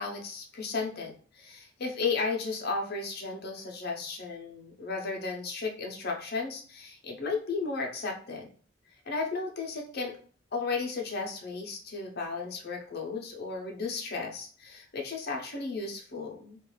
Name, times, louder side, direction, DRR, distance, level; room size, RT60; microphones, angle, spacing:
voice 1, 0.0-8.5 9.1-10.2 10.5-16.6, left 4 dB, 50° left, 1 dB, 0.6 m, -34 dB
2.4 x 2.3 x 3.0 m, 0.42 s
head